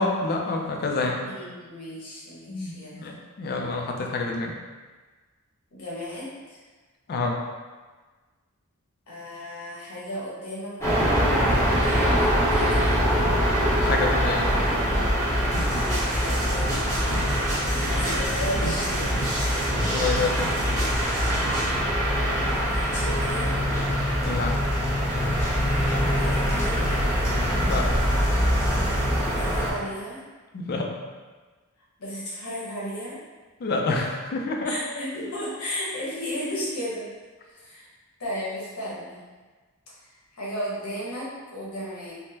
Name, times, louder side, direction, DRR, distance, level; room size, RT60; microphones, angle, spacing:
voice 1, 0.0-1.2 2.5-4.6 7.1-7.4 13.8-14.7 19.9-20.4 24.2-24.5 27.5-27.9 30.5-30.9 33.6-34.7, left 3 dB, 45° left, 1 dB, 0.4 m, -27 dB
voice 2, 1.2-3.0 5.7-6.6 9.1-12.9 16.0-16.8 17.9-19.1 22.3-23.5 26.1-26.8 29.3-30.2 32.0-33.2 34.6-37.1 37.5-37.9 38.2-39.2 40.3-42.1, equal, 80° left, -7 dB, 1.0 m, -34 dB
sound 1, 10.8-29.7, equal, 10° left, 0.7 m, -23 dB
sound 2, 15.5-21.7, right 1 dB, 35° right, 1.4 m, -33 dB
3.5 x 2.1 x 2.7 m, 1.4 s
head